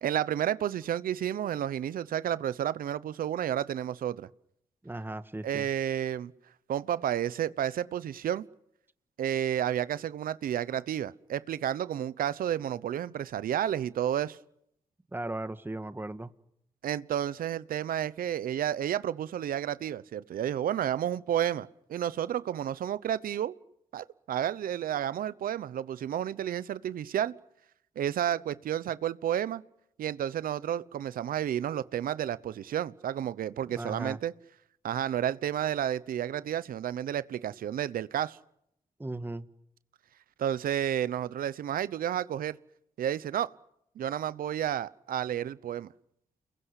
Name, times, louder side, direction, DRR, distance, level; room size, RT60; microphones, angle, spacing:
voice 1, 0.0-4.3 5.4-6.3 6.7-8.4 9.2-14.4 16.8-23.5 23.9-27.3 28.0-29.6 30.0-34.3 34.8-38.4 40.4-42.6 43.0-43.5 44.0-45.9, right 10 dB, 80° right, 1.0 m, -31 dB
voice 2, 4.8-5.7 15.1-16.3 33.8-34.2 39.0-39.5, right 2 dB, 15° right, 1.6 m, -37 dB
30.0 x 21.5 x 8.3 m
cardioid pair, 60°, 15 cm